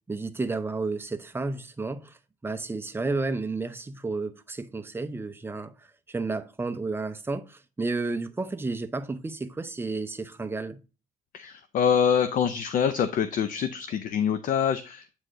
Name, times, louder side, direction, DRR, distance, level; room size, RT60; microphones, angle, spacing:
voice 1, 0.1-10.8, right 3 dB, 15° right, 0.6 m, -32 dB
voice 2, 11.3-15.1, left 7 dB, 50° left, 0.5 m, -25 dB
8.6 x 4.7 x 2.6 m
cardioid pair, 110°, 17 cm